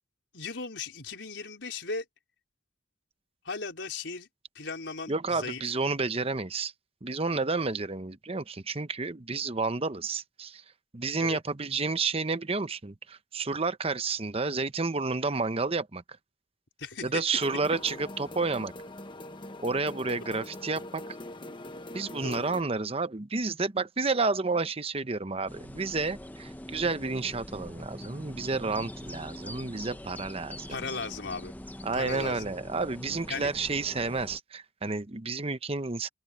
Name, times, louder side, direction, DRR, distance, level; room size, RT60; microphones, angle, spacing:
voice 1, 0.3-2.0 3.4-4.3 4.5-5.6 11.2-11.4 16.8-17.2 22.2-22.6 30.7-31.5 31.9-32.4 33.3-33.5, left 4 dB, 80° left, 4.5 m, -36 dB
voice 2, 5.1-6.7 7.0-10.6 10.9-16.0 17.0-18.7 19.6-21.0 21.9-30.8 31.8-36.1, right 4 dB, 35° right, 0.9 m, -30 dB
sound 1, 17.3-22.6, left 1 dB, 25° left, 1.1 m, -43 dB
sound 2, 25.5-34.4, left 1 dB, 10° left, 0.8 m, -43 dB
open air
head